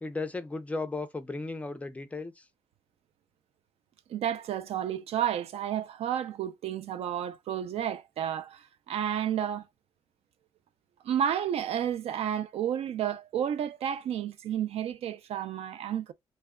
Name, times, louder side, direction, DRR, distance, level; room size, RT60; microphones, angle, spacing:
voice 1, 0.0-2.4, left 3 dB, 15° left, 0.3 m, -35 dB
voice 2, 4.1-9.6 11.0-16.1, right 9 dB, 80° right, 0.4 m, -31 dB
2.2 x 2.1 x 3.4 m
wide cardioid pair, 180°, 10 cm